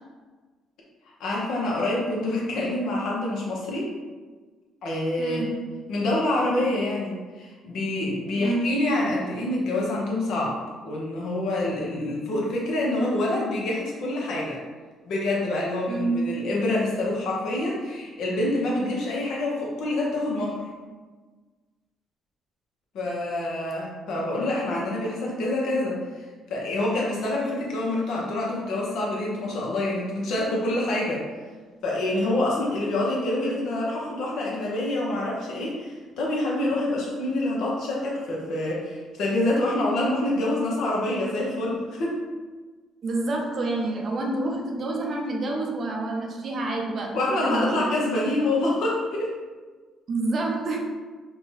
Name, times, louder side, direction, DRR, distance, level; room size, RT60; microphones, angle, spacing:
voice 1, 1.2-3.9 4.8-5.5 5.9-10.5 10.8-14.6 15.1-20.6 22.9-26.0 26.5-31.2 31.8-42.2 47.1-49.4, left 1 dB, 70° left, -3 dB, 0.8 m, -26 dB
voice 2, 5.2-5.6 8.3-8.8 15.9-16.3 27.4-27.5 43.0-47.8 50.1-50.8, right 2 dB, 50° right, 0 dB, 0.5 m, -28 dB
2.7 x 2.2 x 3.1 m, 1.4 s
cardioid pair, 80°, 0 cm